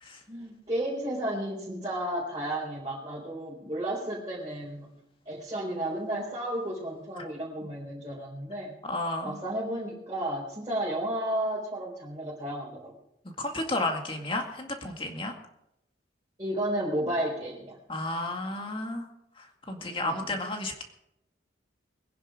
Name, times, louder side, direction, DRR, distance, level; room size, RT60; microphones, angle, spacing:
voice 1, 0.3-4.9 5.3-8.8 9.2-12.9 16.4-17.7 19.8-20.4, right 1 dB, 25° right, -7 dB, 3.9 m, -33 dB
voice 2, 8.8-9.4 13.4-15.3 17.9-19.1 19.4-20.8, left 2 dB, 30° left, 3 dB, 2.1 m, -32 dB
22.0 x 10.0 x 5.0 m, 0.81 s
head